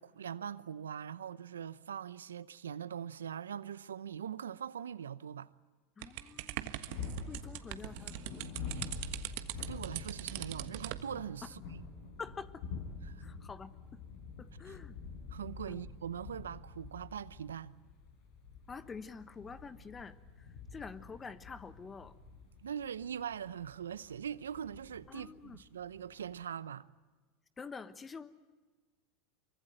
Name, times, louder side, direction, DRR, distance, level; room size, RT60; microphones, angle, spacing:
voice 1, 0.0-5.5 9.6-11.8 13.1-13.2 14.7-14.8 15.3-17.7 22.6-26.9, right 8 dB, 85° right, 0.8 m, -42 dB
voice 2, 6.0-6.8 7.3-8.6 12.2-12.7 13.2-14.0 14.4-15.0 15.7-15.8 18.7-22.2 25.1-25.6 27.6-28.3, left 5 dB, 25° left, 1.2 m, -47 dB
sound 1, 6.0-11.1, right 16 dB, 65° right, 1.4 m, -41 dB
sound 2, 6.9-26.4, left 4 dB, 65° left, 7.0 m, -47 dB
25.0 x 24.0 x 9.0 m
hypercardioid pair, 90°, 0 cm